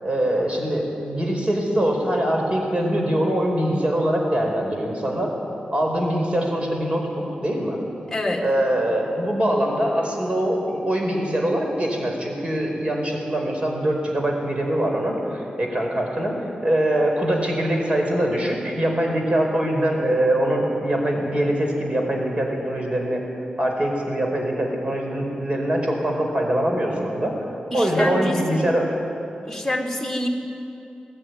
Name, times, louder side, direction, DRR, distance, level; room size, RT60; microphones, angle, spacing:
voice 1, 0.0-5.3 5.7-7.8 8.4-23.2 23.6-27.4 27.7-29.0, right 1 dB, 40° right, 1 dB, 4.6 m, -23 dB
voice 2, 8.1-8.4 27.7-28.7 29.4-30.3, left 1 dB, 5° left, 0 dB, 3.0 m, -26 dB
18.5 x 14.5 x 9.6 m, 2.8 s
wide cardioid pair, 80°, 3 cm